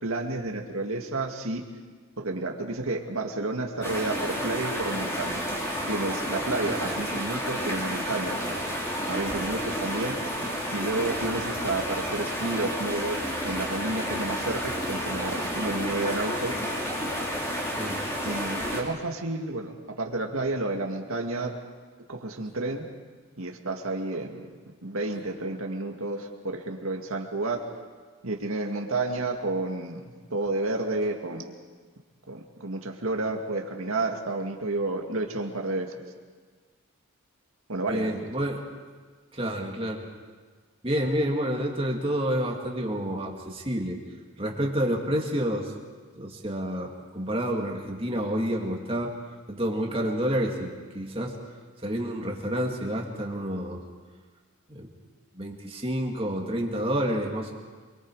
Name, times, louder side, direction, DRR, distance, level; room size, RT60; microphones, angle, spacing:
voice 1, 0.0-1.6 2.2-5.4 5.9-8.4 9.0-10.2 10.7-16.6 18.2-21.5 22.1-22.9 23.4-24.5 24.8-27.6 28.2-31.5 32.3-35.9 37.7-38.3, right 2 dB, 75° right, 2 dB, 2.2 m, -31 dB
sound 1, 3.8-18.8, equal, 15° left, 3.4 m, -31 dB
voice 2, 37.9-38.6 39.3-40.1 40.8-44.0 44.4-45.7 46.1-49.1 49.5-51.4 51.8-53.8 54.7-54.9 55.3-57.5, equal, 25° right, 0 dB, 2.5 m, -29 dB
28.0 x 22.5 x 4.9 m, 1.5 s
head